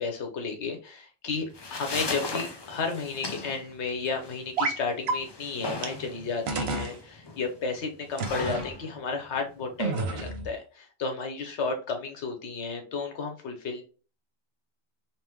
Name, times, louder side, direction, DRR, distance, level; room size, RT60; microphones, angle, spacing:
voice 1, 0.0-1.5 1.7-13.8, left 4 dB, 85° left, 4 dB, 1.2 m, -33 dB
sound 1, 1.3-10.3, left 3 dB, 40° left, 0.4 m, -38 dB
sound 2, 4.6-4.8 5.1-5.2 5.8-5.9 6.5-6.9 8.2-8.7 9.8-10.5, right 3 dB, 70° right, 0.9 m, -29 dB
3.5 x 3.0 x 3.0 m, 0.36 s
omnidirectional pair, 1.1 m